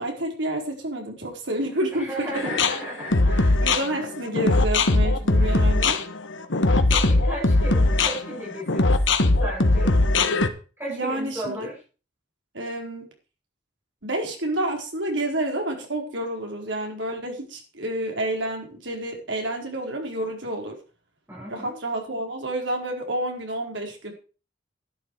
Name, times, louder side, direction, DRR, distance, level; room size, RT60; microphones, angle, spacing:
voice 1, 0.0-2.5 3.6-6.0 10.9-11.7 12.5-13.1 14.0-20.8 21.5-24.1, right 1 dB, 70° right, 1 dB, 4.5 m, -29 dB
voice 2, 1.9-3.7 6.6-9.0 9.4-10.0 10.8-11.8 21.3-21.8, right 1 dB, 10° right, -6 dB, 7.0 m, -35 dB
sound 1, 2.3-10.5, left 2 dB, 75° left, 1.4 m, -20 dB
11.5 x 11.5 x 4.9 m, 0.36 s
head